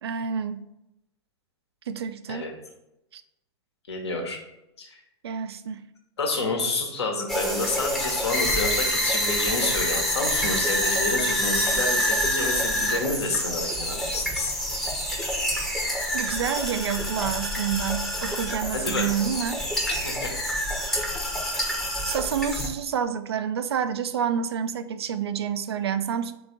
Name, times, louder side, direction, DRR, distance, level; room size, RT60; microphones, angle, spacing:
voice 1, 0.0-0.7 1.9-2.5 3.1-3.2 5.2-5.8 16.1-19.6 22.0-26.3, right 8 dB, 65° right, 11 dB, 0.4 m, -28 dB
voice 2, 3.9-4.4 4.8-5.0 6.2-14.6 18.7-19.3 20.0-20.3, left 3 dB, 70° left, 2 dB, 1.1 m, -29 dB
sound 1, 7.3-22.7, equal, 5° left, 0.7 m, -27 dB
3.9 x 3.3 x 3.8 m, 0.87 s
figure-of-eight pair, 95°, 14 cm